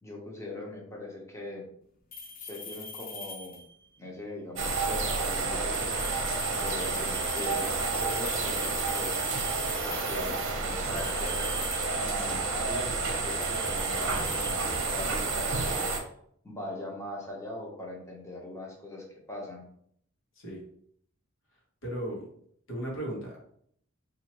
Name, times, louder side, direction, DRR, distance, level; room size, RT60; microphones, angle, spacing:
voice 1, 0.0-1.7 2.4-3.6 4.0-6.2 6.5-9.5 9.8-11.5 12.0-15.9 16.4-19.7, left 1 dB, 15° left, -2 dB, 1.0 m, -41 dB
sound 1, 2.1-3.9 5.6-10.3 10.9-12.4 12.7-15.2, left 4 dB, 45° left, 0.6 m, -43 dB
sound 2, 4.6-16.0, right 3 dB, 65° right, 0.8 m, -30 dB
voice 2, 21.8-22.3 22.7-23.4, right 1 dB, 65° left, -2 dB, 1.3 m, -35 dB
4.2 x 2.8 x 3.0 m, 0.66 s
head